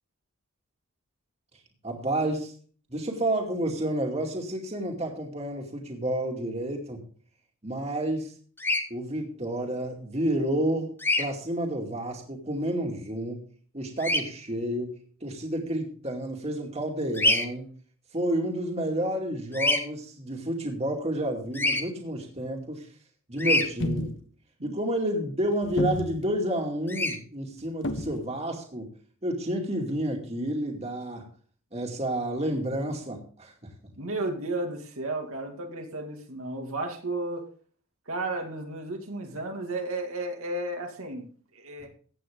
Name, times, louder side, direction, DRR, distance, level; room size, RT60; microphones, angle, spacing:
voice 1, 1.8-2.5 2.9-7.0 7.6-8.3 8.9-13.5 13.7-17.6 18.1-22.9 23.3-24.1 24.6-28.9 29.2-31.3 31.7-33.5, right 1 dB, 30° right, 1 dB, 2.4 m, -30 dB
Bird vocalization bird call bird song, 8.6-8.8 11.0-11.2 14.0-14.2 17.1-17.5 19.5-19.8 21.5-21.8 23.4-23.7 26.9-27.2, left 2 dB, 10° left, 1.0 m, -24 dB
sound 1, 23.6-24.1 25.6-26.3 27.8-28.2, left 1 dB, 55° left, 1.2 m, -30 dB
voice 2, 34.0-37.5 38.1-41.2 41.5-41.9, right 2 dB, 80° right, 2 dB, 2.3 m, -33 dB
15.5 x 9.1 x 3.7 m, 0.43 s
head